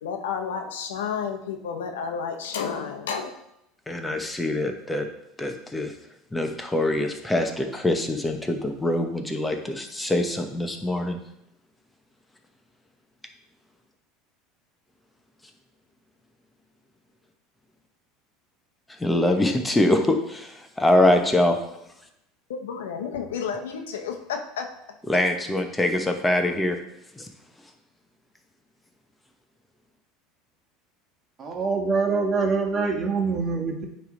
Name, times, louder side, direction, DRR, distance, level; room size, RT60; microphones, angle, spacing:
voice 1, 0.0-3.3 22.5-24.7, left 6 dB, 85° left, 4 dB, 0.8 m, -31 dB
voice 2, 3.9-5.1 5.4-5.9 6.3-11.2 19.0-21.6 25.1-26.8 27.2-27.3, left 1 dB, 10° left, 5 dB, 1.0 m, -24 dB
voice 3, 31.4-33.8, right 4 dB, 35° right, 1 dB, 1.5 m, -24 dB
9.1 x 3.4 x 3.9 m, 0.83 s
hypercardioid pair, 85°, 0 cm